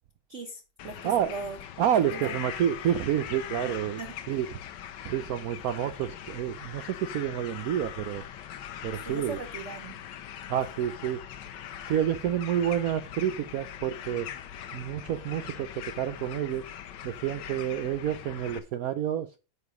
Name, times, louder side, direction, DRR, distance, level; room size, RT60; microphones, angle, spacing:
voice 1, 0.3-1.6 2.1-2.4 3.6-4.2 9.1-10.0, right 3 dB, 50° right, 1.0 m, -39 dB
sound 1, 0.8-18.6, left 10 dB, 70° left, 1.4 m, -41 dB
voice 2, 1.8-4.0 4.3-4.5 5.0-8.2 8.8-9.4 10.5-11.2 11.8-14.3 14.7-16.6 17.0-19.4, right 10 dB, 85° right, 0.7 m, -29 dB
9.4 x 5.0 x 5.0 m
omnidirectional pair, 2.2 m